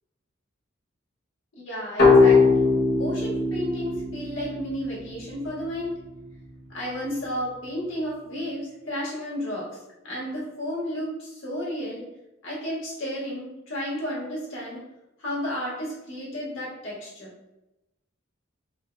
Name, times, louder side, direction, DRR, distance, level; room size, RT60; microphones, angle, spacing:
voice 1, 1.5-2.7 3.0-6.0 6.7-9.8 10.0-12.0 12.4-14.8 15.2-17.3, equal, 70° left, -6 dB, 1.4 m, -32 dB
sound 1, 2.0-5.5, left 4 dB, 55° left, 1.2 m, -20 dB
3.6 x 2.5 x 2.2 m, 0.95 s
head